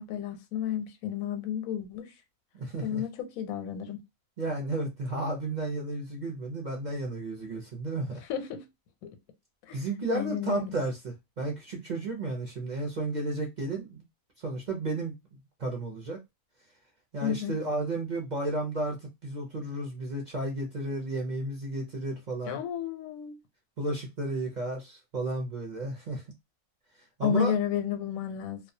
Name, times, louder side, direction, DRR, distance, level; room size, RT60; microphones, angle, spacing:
voice 1, 0.0-2.1 2.8-4.0 8.3-8.7 9.0-9.1 9.7-9.8 10.1-10.8 17.2-17.5 22.5-23.4 27.2-28.6, left 9 dB, 90° left, 1.0 m, -32 dB
voice 2, 2.6-3.0 4.4-8.2 9.7-14.0 14.4-15.1 15.6-16.2 17.1-22.6 23.8-26.2 27.2-27.5, right 2 dB, 50° right, 0.5 m, -33 dB
2.2 x 2.2 x 2.6 m
omnidirectional pair, 1.4 m